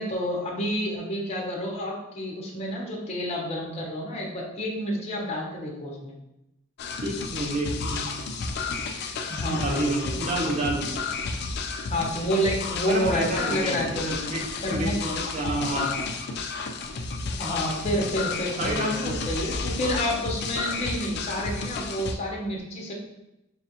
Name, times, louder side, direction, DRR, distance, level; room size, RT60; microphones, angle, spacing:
voice 1, 0.0-6.1 9.3-10.6 11.9-14.2 14.6-16.0 17.4-22.9, equal, 30° left, -3 dB, 1.0 m, -29 dB
sound 1, 6.8-22.1, left 4 dB, 55° left, 0.4 m, -32 dB
voice 2, 7.0-8.1 9.5-11.0 12.8-14.4 14.7-15.9 18.6-19.2, right 1 dB, 35° right, 0 dB, 0.6 m, -29 dB
5.4 x 2.5 x 2.8 m, 0.90 s
head